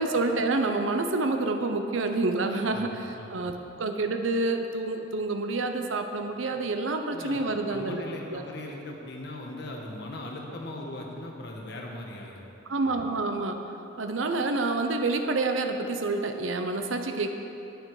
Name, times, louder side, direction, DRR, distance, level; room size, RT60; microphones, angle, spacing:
voice 1, 0.0-8.4 12.7-13.6 14.0-17.3, right 3 dB, 85° right, 5 dB, 0.7 m, -28 dB
voice 2, 2.7-3.3 7.1-7.4 7.7-12.4 12.7-12.9, left 1 dB, 60° left, 0 dB, 1.4 m, -39 dB
10.0 x 9.0 x 4.8 m, 2.9 s
head